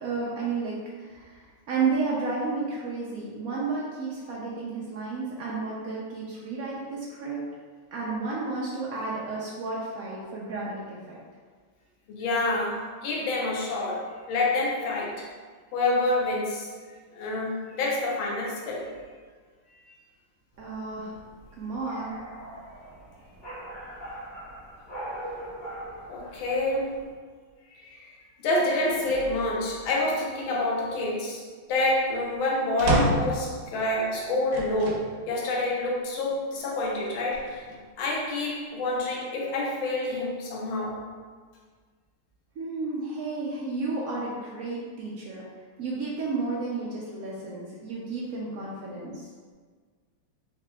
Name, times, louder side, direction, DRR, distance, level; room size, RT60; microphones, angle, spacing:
voice 1, 0.0-7.4 7.9-11.2 20.6-21.2 21.6-22.1 42.6-45.4 45.8-49.3, right 4 dB, 85° right, -5 dB, 0.7 m, -32 dB
voice 2, 12.1-15.2 15.7-16.7 17.1-18.8 22.3-22.4 26.1-26.9 27.8-28.1 28.4-31.4 31.7-37.7 38.0-41.0, left 2 dB, 75° left, -4 dB, 1.6 m, -27 dB
sound 1, 20.5-27.1, right 1 dB, 30° left, 1.2 m, -41 dB
sound 2, 32.8-33.5 34.5-35.1 35.7-35.8 37.0-37.8, right 2 dB, 65° right, 1.2 m, -27 dB
4.5 x 2.9 x 3.4 m, 1.6 s
omnidirectional pair, 2.3 m